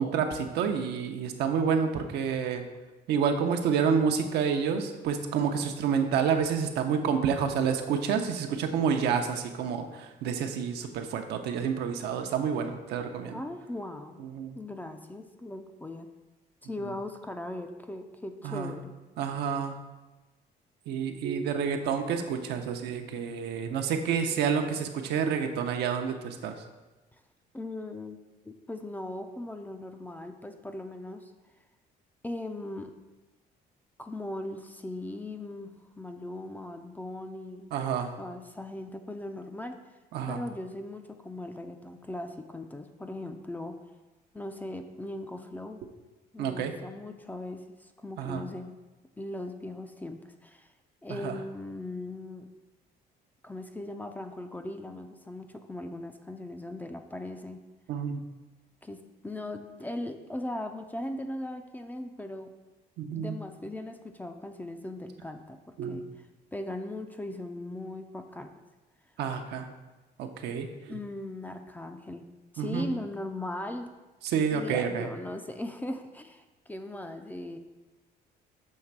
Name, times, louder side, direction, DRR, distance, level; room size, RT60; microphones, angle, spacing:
voice 1, 0.0-2.6 3.1-13.4 14.2-14.6 16.8-16.9 18.4-18.7 19.2-19.8 20.9-26.6 37.7-38.1 40.1-40.4 46.4-46.7 48.2-48.4 51.1-51.4 57.9-58.2 63.0-63.4 65.8-66.1 69.2-69.7 70.2-71.0 72.6-72.9 74.2-75.1, right 6 dB, 75° right, 5 dB, 0.7 m, -29 dB
voice 2, 13.3-14.2 14.5-16.1 16.6-19.0 27.5-28.2 28.5-31.3 32.2-32.9 34.0-37.7 38.2-39.8 40.3-43.8 44.3-45.8 46.3-48.7 49.2-50.7 51.0-52.5 53.4-57.6 58.8-62.5 63.1-65.6 65.9-66.0 66.5-68.5 70.9-72.3 72.5-73.9 74.5-77.6, left 1 dB, 10° left, 6 dB, 0.4 m, -39 dB
6.4 x 3.2 x 5.9 m, 1.1 s
cardioid pair, 110°, 17 cm